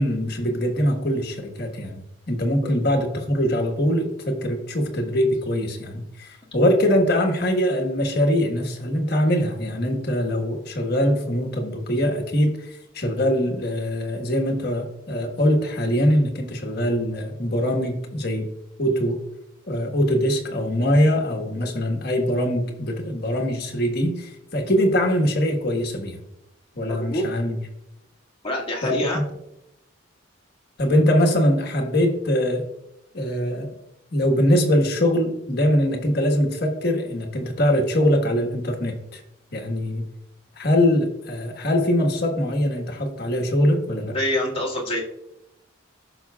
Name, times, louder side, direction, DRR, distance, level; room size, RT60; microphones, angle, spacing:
voice 1, 0.0-2.0 2.3-12.7 12.9-18.5 18.8-19.2 19.7-26.2 26.7-27.6 28.8-29.2 30.8-32.6 33.1-33.7 34.1-39.2 39.5-40.0 40.6-44.1, equal, 55° left, 2 dB, 1.4 m, -22 dB
voice 2, 26.9-27.3 28.4-29.2 44.1-45.0, left 1 dB, 30° left, -2 dB, 1.8 m, -26 dB
14.5 x 5.9 x 2.3 m, 0.86 s
head